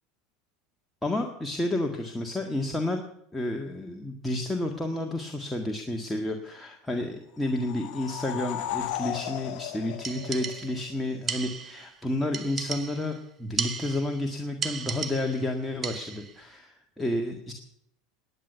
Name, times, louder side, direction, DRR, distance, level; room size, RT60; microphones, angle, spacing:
voice 1, 1.0-3.0 3.3-17.5, left 1 dB, 5° left, 2 dB, 1.8 m, -31 dB
sound 1, 7.4-11.0, left 12 dB, 60° left, 0.8 m, -35 dB
sound 2, 10.0-10.9 11.3-11.9 12.3-13.2 13.6-14.2 14.6-15.5 15.8-16.3, right 6 dB, 30° right, 1.4 m, -35 dB
18.5 x 9.8 x 6.8 m, 0.74 s
hypercardioid pair, 85°, 0 cm